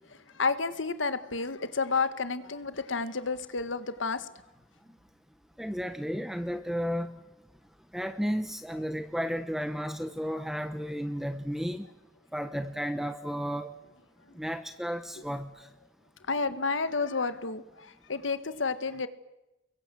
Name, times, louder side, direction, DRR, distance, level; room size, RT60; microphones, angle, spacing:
voice 1, 0.1-4.3 16.3-19.1, left 4 dB, 90° left, 11 dB, 1.6 m, -31 dB
voice 2, 5.6-7.1 7.9-11.9 12.3-13.7 14.4-15.5, equal, ahead, 8 dB, 1.0 m, -33 dB
29.5 x 22.5 x 7.8 m, 0.96 s
head